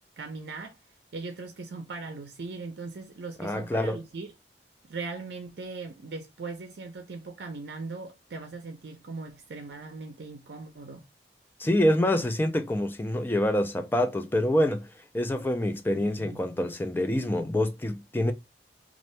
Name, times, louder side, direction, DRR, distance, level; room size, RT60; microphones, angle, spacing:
voice 1, 0.2-0.7 1.1-4.3 4.8-11.0 16.0-16.4, right 3 dB, 65° right, 0.5 m, -39 dB
voice 2, 3.4-4.0 11.6-14.9 15.1-18.3, left 1 dB, 10° left, 0.3 m, -26 dB
2.6 x 2.5 x 3.1 m
head